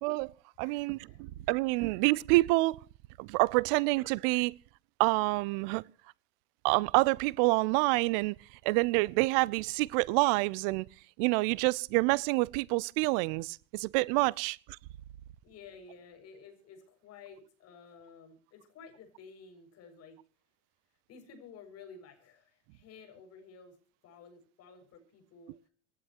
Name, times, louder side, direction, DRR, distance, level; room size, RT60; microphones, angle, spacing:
voice 1, 0.0-0.3 0.6-2.8 3.2-4.5 5.0-5.8 6.6-8.3 8.6-10.8 11.2-14.6, right 23 dB, 50° right, 0.6 m, -27 dB
voice 2, 0.6-1.2 15.4-20.2 21.1-23.8 24.0-25.6, left 5 dB, 45° left, 6.9 m, -53 dB
27.5 x 11.0 x 3.1 m
hypercardioid pair, 85°, 36 cm